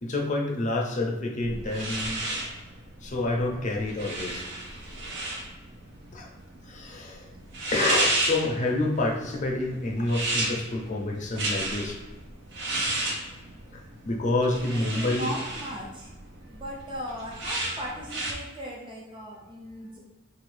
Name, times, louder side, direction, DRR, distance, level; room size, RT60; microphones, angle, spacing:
voice 1, 0.0-2.2 3.0-4.4 6.1-6.3 6.6-7.3 7.7-12.0 13.7-15.3, left 2 dB, 35° left, 0 dB, 0.6 m, -28 dB
sound 1, 1.4-18.3, right 1 dB, 60° right, 0.7 m, -33 dB
voice 2, 14.9-16.1 16.5-20.0, equal, 25° right, -3 dB, 0.5 m, -38 dB
3.8 x 2.6 x 3.2 m, 1.1 s
head